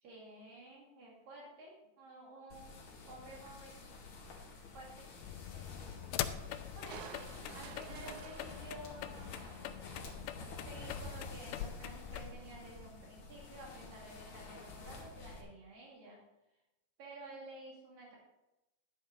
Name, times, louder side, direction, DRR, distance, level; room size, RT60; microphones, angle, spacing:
voice 1, 0.0-3.8 4.7-5.1 5.5-5.6 6.7-7.2 7.5-9.4 10.6-16.2 17.0-18.2, right 2 dB, 60° right, -4 dB, 3.9 m, -52 dB
sound 1, 2.5-15.4, left 3 dB, 55° left, 3.3 m, -50 dB
sound 2, 5.2-12.3, left 11 dB, 85° left, 2.4 m, -44 dB
Crushing, 6.9-10.3 10.7-10.8, right 9 dB, 80° right, 2.3 m, -53 dB
11.5 x 9.7 x 3.9 m, 0.95 s
omnidirectional pair, 4.7 m